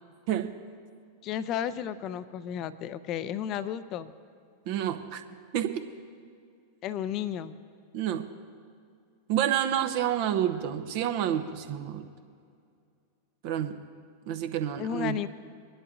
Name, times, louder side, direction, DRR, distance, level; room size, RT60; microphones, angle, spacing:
voice 1, 1.2-4.1 6.8-7.6 14.8-15.3, left 9 dB, 35° left, 14 dB, 0.5 m, -33 dB
voice 2, 4.7-5.2 5.5-5.8 7.9-8.3 9.3-12.1 13.4-13.8 14.2-15.2, right 10 dB, 45° right, 8 dB, 0.8 m, -29 dB
23.0 x 11.0 x 2.7 m, 2.3 s
figure-of-eight pair, 90°, 0 cm